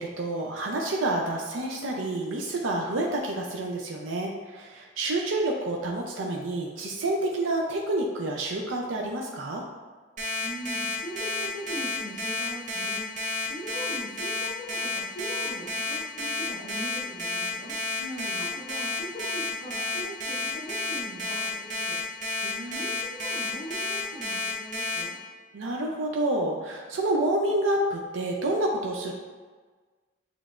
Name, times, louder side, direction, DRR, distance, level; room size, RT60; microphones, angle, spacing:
voice 1, 0.0-9.6 18.0-18.4 22.4-22.9 25.5-29.1, right 1 dB, 85° right, 0 dB, 0.5 m, -29 dB
Alarm, 10.2-25.0, left 3 dB, 40° right, 0.8 m, -30 dB
voice 2, 10.4-13.1 13.5-17.7 18.5-22.0 22.6-25.2, equal, 40° left, -7 dB, 1.1 m, -40 dB
6.9 x 3.2 x 2.5 m, 1.4 s
head